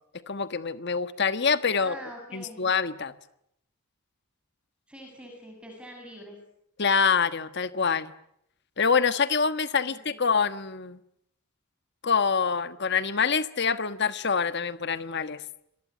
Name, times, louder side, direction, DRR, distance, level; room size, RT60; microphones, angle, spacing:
voice 1, 0.3-2.0 2.3-3.1 6.8-8.1 8.8-11.0 12.0-15.4, left 5 dB, 50° left, 12 dB, 1.4 m, -25 dB
voice 2, 1.8-2.6 4.9-6.4 9.9-10.2, equal, 5° right, 1 dB, 7.0 m, -44 dB
28.0 x 23.0 x 9.1 m, 0.76 s
head